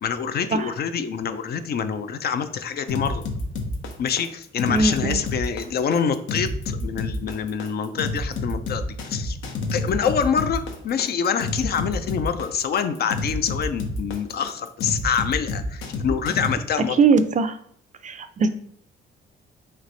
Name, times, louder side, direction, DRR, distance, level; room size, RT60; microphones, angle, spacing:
voice 1, 0.0-3.3 4.0-9.4 9.7-17.0, left 7 dB, 55° left, 10 dB, 0.4 m, -26 dB
sound 1, 2.9-16.5, left 2 dB, 80° left, 0.8 m, -29 dB
voice 2, 4.7-5.2 17.0-17.6 18.0-18.5, right 4 dB, 40° right, 10 dB, 0.4 m, -20 dB
3.3 x 3.2 x 3.9 m, 0.67 s
cardioid pair, 90°, 20 cm